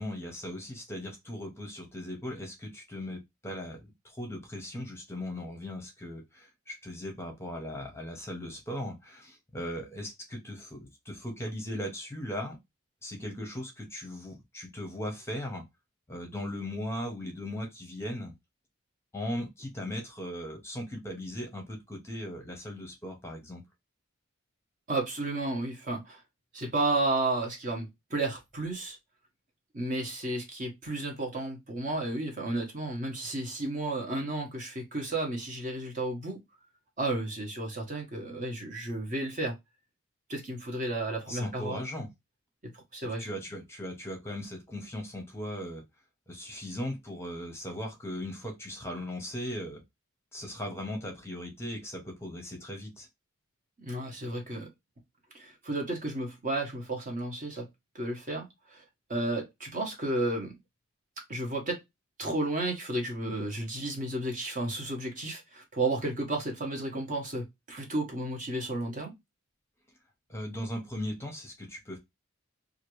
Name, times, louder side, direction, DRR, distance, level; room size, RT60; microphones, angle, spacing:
voice 1, 0.0-12.6 13.0-15.6 16.1-18.3 19.1-23.6 41.3-42.1 43.0-45.8 46.3-49.8 50.3-53.1 70.3-72.0, left 1 dB, 10° left, 0.8 m, -38 dB
voice 2, 24.9-26.2 26.5-29.0 29.7-36.4 37.0-39.6 40.3-42.1 42.6-43.3 53.8-54.7 55.3-57.7 57.9-58.8 59.1-60.5 61.3-61.8 62.2-69.1, right 2 dB, 40° right, 1.0 m, -32 dB
2.9 x 2.5 x 3.0 m
head